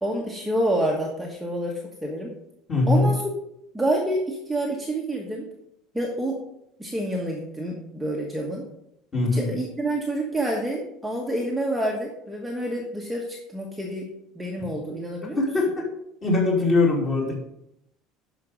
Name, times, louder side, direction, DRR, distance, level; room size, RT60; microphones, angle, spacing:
voice 1, 0.0-2.3 2.9-3.2 3.7-5.5 5.9-6.4 6.8-8.6 9.3-14.1 14.3-15.4, right 1 dB, 5° right, -2 dB, 1.3 m, -28 dB
voice 2, 2.7-3.1 9.1-9.5 14.6-14.7 15.4-15.8 16.2-17.3, left 3 dB, 25° left, -2 dB, 3.0 m, -21 dB
12.0 x 5.2 x 5.1 m, 0.78 s
cardioid pair, 160°, 0 cm